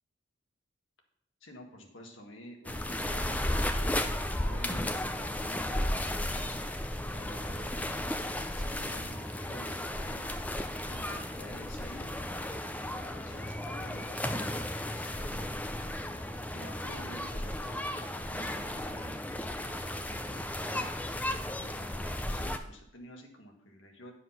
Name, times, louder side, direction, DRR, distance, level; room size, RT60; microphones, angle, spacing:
voice 1, 1.4-6.6 7.1-10.2 10.8-12.2 12.6-15.7 16.5-20.9 21.6-24.1, left 1 dB, 75° left, 2 dB, 1.6 m, -50 dB
sound 1, 2.6-22.6, left 1 dB, 10° left, 0.4 m, -34 dB
9.7 x 4.9 x 5.7 m, 0.74 s
head